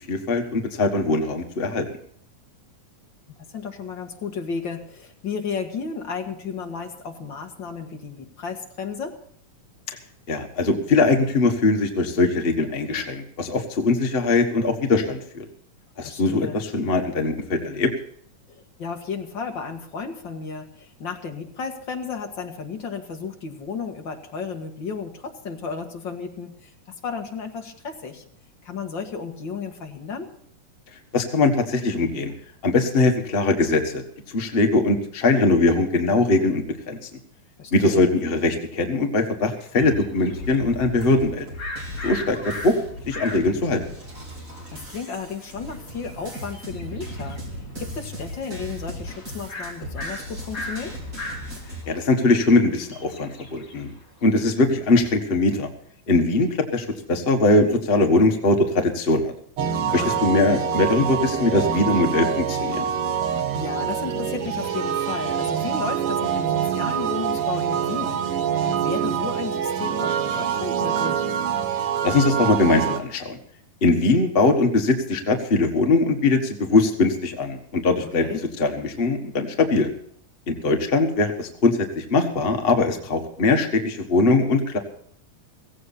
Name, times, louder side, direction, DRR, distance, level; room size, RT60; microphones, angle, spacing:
voice 1, 0.1-1.9 10.3-15.4 16.0-17.9 31.1-32.3 32.6-37.0 37.7-41.5 42.0-42.7 43.1-43.8 51.9-53.9 54.2-55.7 56.1-59.3 59.9-62.8 72.0-73.4 73.8-78.2 78.6-79.9 80.5-84.8, left 3 dB, 75° left, 4 dB, 0.5 m, -21 dB
voice 2, 3.5-9.2 16.0-16.6 18.5-26.7 27.0-28.2 28.6-30.3 37.6-38.1 44.3-44.4 44.7-51.0 59.9-60.3 63.3-71.3 78.2-78.4, left 5 dB, 45° left, 3 dB, 1.9 m, -33 dB
sound 1, 39.5-43.7 44.1-44.2 44.4-47.5 47.8-48.7 49.0-49.1 49.5-54.2, left 1 dB, 30° left, 2.4 m, -38 dB
sound 2, 40.3-51.8, equal, 25° right, 4.6 m, -37 dB
sound 3, 59.6-73.0, right 8 dB, 55° right, 1.8 m, -25 dB
16.5 x 16.0 x 4.2 m, 0.62 s
omnidirectional pair, 3.7 m